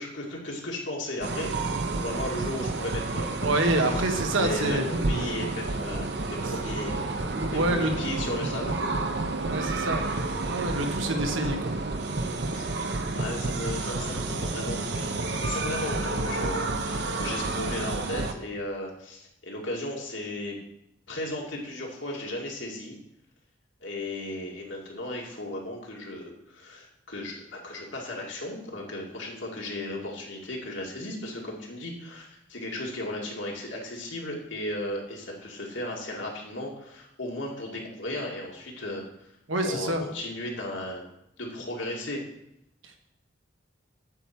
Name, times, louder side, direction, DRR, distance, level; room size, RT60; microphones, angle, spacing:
voice 1, 0.0-1.5 2.0-3.3 3.9-4.0 4.3-7.1 7.4-8.8 12.5-20.6 21.1-23.0 23.8-39.3 39.6-41.0 41.4-42.2, left 1 dB, 75° left, -1 dB, 2.2 m, -35 dB
sound 1, 1.2-18.3, right 3 dB, 60° right, 0.8 m, -30 dB
voice 2, 3.4-4.8 7.3-7.9 9.4-10.0 10.4-11.7 39.5-40.0 42.8-43.0, right 1 dB, 85° right, 4 dB, 1.3 m, -27 dB
8.9 x 4.7 x 7.1 m, 0.79 s
head